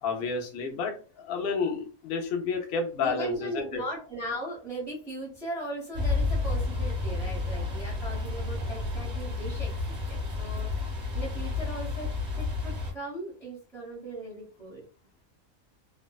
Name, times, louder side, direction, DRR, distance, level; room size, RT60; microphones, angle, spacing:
voice 1, 0.0-3.8, left 4 dB, 60° left, 3 dB, 0.6 m, -30 dB
voice 2, 3.0-9.7 10.1-10.7 11.1-14.8, right 1 dB, 5° left, -4 dB, 0.9 m, -38 dB
sound 1, 5.9-12.9, left 3 dB, 35° right, 0.9 m, -31 dB
2.5 x 2.1 x 2.2 m, 0.35 s
omnidirectional pair, 1.5 m